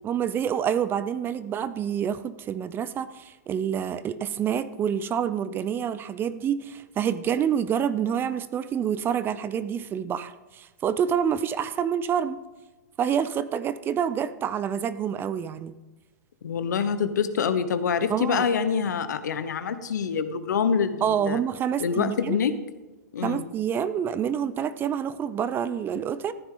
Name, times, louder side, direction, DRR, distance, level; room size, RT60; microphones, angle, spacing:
voice 1, 0.0-12.4 13.0-15.7 18.1-18.5 21.0-22.4 23.2-26.3, right 8 dB, 20° right, 15 dB, 0.5 m, -27 dB
voice 2, 16.4-21.4 21.8-22.5 23.1-23.4, left 6 dB, 80° left, 12 dB, 1.0 m, -26 dB
14.5 x 9.5 x 3.8 m, 1.1 s
hypercardioid pair, 125°, 9 cm